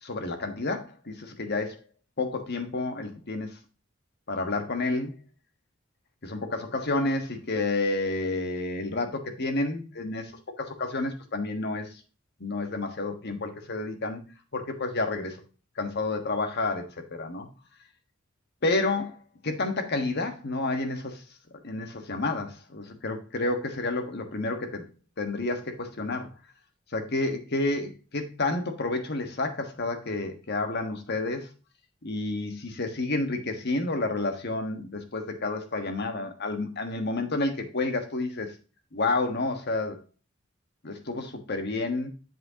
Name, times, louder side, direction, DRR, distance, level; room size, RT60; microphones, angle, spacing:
voice 1, 0.0-1.8 2.2-3.6 4.3-5.2 6.2-10.3 10.6-12.0 12.4-14.2 14.5-15.4 15.8-17.5 18.6-19.2 19.4-21.2 21.6-24.9 25.2-26.3 26.9-31.5 32.0-38.5 38.9-40.0 40.8-42.1, left 2 dB, 55° left, 6 dB, 1.4 m, -30 dB
8.1 x 7.4 x 2.9 m, 0.34 s
head